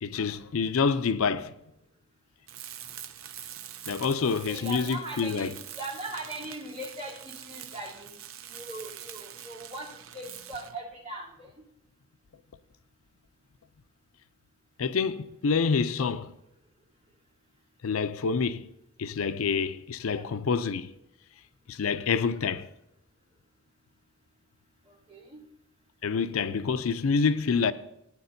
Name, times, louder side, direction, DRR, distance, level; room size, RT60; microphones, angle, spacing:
voice 1, 0.0-1.5 3.9-5.5 14.8-16.3 17.8-18.7 19.0-20.9 21.7-22.7 26.0-27.7, left 5 dB, 80° left, 0.5 m, -27 dB
Tools, 2.5-10.9, right 10 dB, 75° right, 0.6 m, -44 dB
voice 2, 4.4-8.2 8.5-11.5 20.0-20.2 24.8-25.4, right 1 dB, 30° right, 3.1 m, -40 dB
17.0 x 9.5 x 2.7 m
head